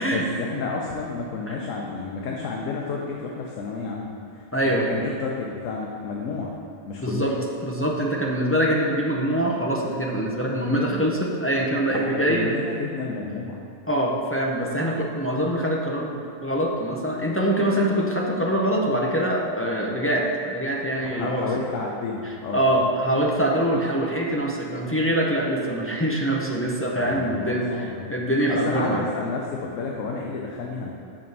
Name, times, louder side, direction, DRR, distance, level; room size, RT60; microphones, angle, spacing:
voice 1, 0.0-6.5 6.8-7.4 11.9-13.6 21.0-22.6 27.0-28.1 28.5-30.9, left 4 dB, 85° left, -1 dB, 1.1 m, -31 dB
voice 2, 4.5-4.8 7.0-7.3 7.6-12.5 13.9-21.5 22.5-29.0, right 1 dB, 15° left, -3 dB, 0.4 m, -24 dB
6.2 x 5.1 x 5.4 m, 2.7 s
omnidirectional pair, 1.3 m